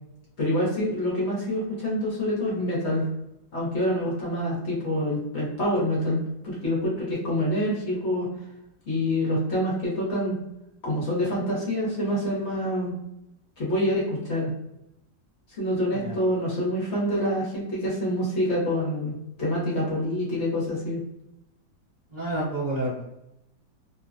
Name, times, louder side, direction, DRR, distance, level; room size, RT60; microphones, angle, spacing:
voice 1, 0.4-3.1 3.5-8.3 8.9-10.4 10.8-12.9 13.6-14.5 15.6-19.1 19.4-21.0, equal, 50° left, -5 dB, 1.0 m, -26 dB
voice 2, 22.1-23.1, right 1 dB, 35° right, -12 dB, 0.7 m, -30 dB
3.0 x 2.1 x 2.5 m, 0.86 s
omnidirectional pair, 2.0 m